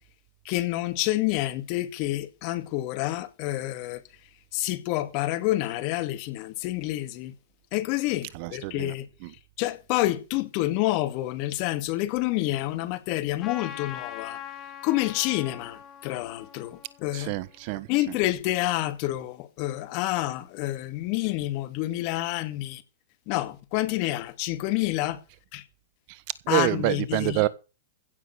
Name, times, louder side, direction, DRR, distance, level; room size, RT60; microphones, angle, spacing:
voice 1, 0.4-4.0 4.5-7.3 7.7-9.1 9.6-14.4 14.8-17.3 17.9-22.8 23.3-25.2 25.5-25.6 26.5-27.5, left 16 dB, 50° left, 2.2 m, -28 dB
voice 2, 8.4-8.9 17.1-17.9 26.5-27.5, right 19 dB, 55° right, 1.3 m, -26 dB
Trumpet, 13.4-18.1, left 9 dB, 30° left, 3.5 m, -42 dB
16.0 x 7.2 x 6.7 m
hypercardioid pair, 120°, 0 cm